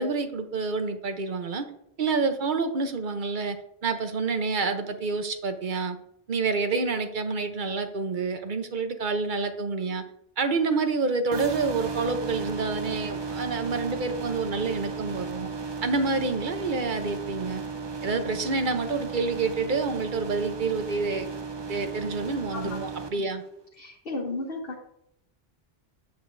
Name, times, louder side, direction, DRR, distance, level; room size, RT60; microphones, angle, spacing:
voice 1, 0.0-1.6 2.0-3.6 3.8-6.0 6.3-10.0 10.4-15.5 15.8-17.6 18.0-21.3 21.7-23.4, right 4 dB, 50° right, 7 dB, 1.0 m, -28 dB
sound 1, 11.3-23.1, right 4 dB, 30° right, 0.5 m, -35 dB
voice 2, 23.8-24.9, left 2 dB, 65° left, -2 dB, 1.4 m, -34 dB
8.2 x 7.9 x 2.7 m, 0.75 s
omnidirectional pair, 1.1 m